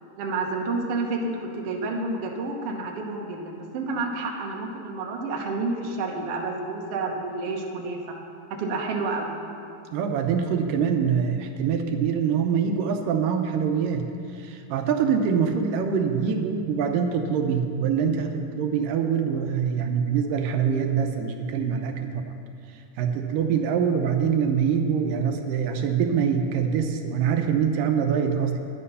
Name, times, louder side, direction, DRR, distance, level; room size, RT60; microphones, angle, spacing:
voice 1, 0.2-8.1 8.5-9.3, right 3 dB, 60° right, 0 dB, 1.7 m, -29 dB
voice 2, 9.9-14.1 14.3-22.4 22.7-28.6, right 7 dB, 80° right, 5 dB, 2.4 m, -24 dB
10.5 x 10.5 x 5.5 m, 2.5 s
omnidirectional pair, 3.8 m